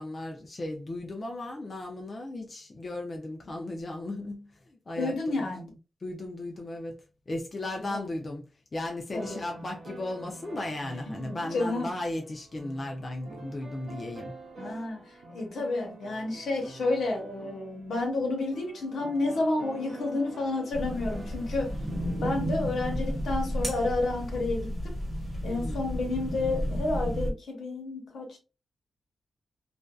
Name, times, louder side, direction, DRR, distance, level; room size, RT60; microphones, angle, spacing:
voice 1, 0.0-7.0 7.3-14.4 25.4-25.9, left 1 dB, 30° left, 0.4 m, -36 dB
voice 2, 5.0-5.7 7.8-8.1 9.1-9.4 11.2-11.9 14.6-21.8 22.2-24.9 25.4-28.4, left 2 dB, 75° left, 1.0 m, -30 dB
sound 1, 9.1-23.6, right 3 dB, 70° right, 0.8 m, -47 dB
sound 2, 20.7-27.3, equal, 20° right, 1.1 m, -32 dB
2.5 x 2.3 x 2.2 m
wide cardioid pair, 135°, 0 cm